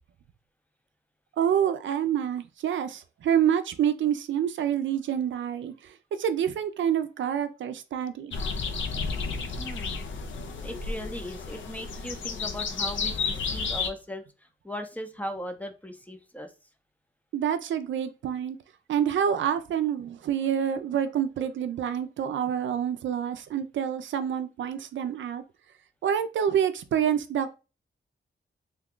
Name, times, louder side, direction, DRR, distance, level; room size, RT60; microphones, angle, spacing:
voice 1, 1.4-8.3 17.3-18.6 18.9-25.4 26.0-27.5, right 9 dB, 80° right, 0.4 m, -27 dB
sound 1, 8.3-13.9, left 4 dB, 85° left, 0.5 m, -32 dB
voice 2, 9.6-10.0 10.6-16.5, equal, 10° left, 0.5 m, -38 dB
2.8 x 2.3 x 3.6 m
cardioid pair, 95°, 19 cm